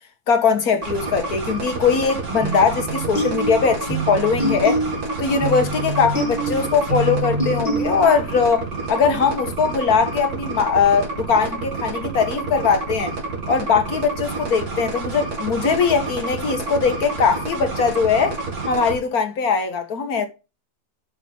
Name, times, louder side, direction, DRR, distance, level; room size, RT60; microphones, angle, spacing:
voice 1, 0.3-4.8 5.2-13.1 13.5-18.4 18.7-20.3, left 5 dB, 75° left, 1.8 m, -20 dB
sound 1, 0.8-18.9, right 3 dB, 75° right, 3.1 m, -29 dB
sound 2, 2.4-8.4, right 1 dB, 30° left, 3.0 m, -26 dB
7.3 x 6.5 x 5.3 m
omnidirectional pair, 1.6 m